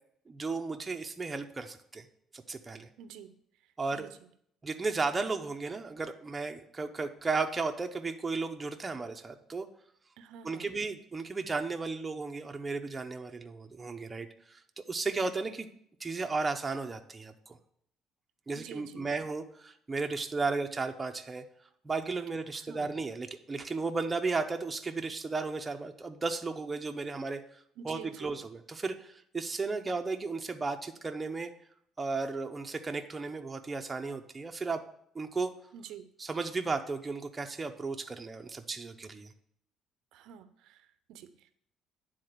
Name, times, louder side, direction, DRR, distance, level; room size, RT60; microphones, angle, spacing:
voice 1, 0.3-2.1 2.3-2.9 3.8-4.1 4.6-9.7 10.4-14.6 14.9-15.7 16.0-17.6 18.5-21.4 21.8-27.4 27.8-31.5 32.0-34.8 35.1-35.5 36.2-39.3, right 4 dB, 20° right, 5 dB, 0.7 m, -34 dB
voice 2, 3.0-3.4 3.9-4.2 10.2-10.7 18.5-19.1 22.6-22.9 27.8-28.3 35.7-36.1 40.1-41.5, right 8 dB, 80° right, 12 dB, 0.6 m, -48 dB
9.6 x 3.9 x 6.6 m, 0.68 s
cardioid pair, 115°, 0 cm